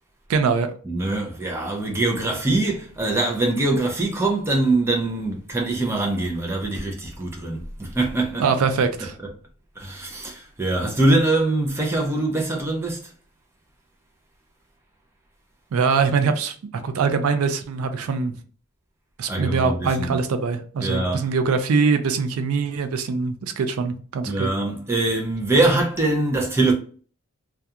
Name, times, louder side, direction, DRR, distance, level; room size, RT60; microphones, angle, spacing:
voice 1, 0.3-0.7 8.4-9.2 15.7-16.5 16.8-18.3 19.2-24.5, right 5 dB, 75° right, 0.4 m, -23 dB
voice 2, 0.9-8.4 9.8-13.1 19.3-20.2 20.8-21.3 24.3-26.7, right 2 dB, 10° right, 0.4 m, -23 dB
2.3 x 2.2 x 2.7 m
head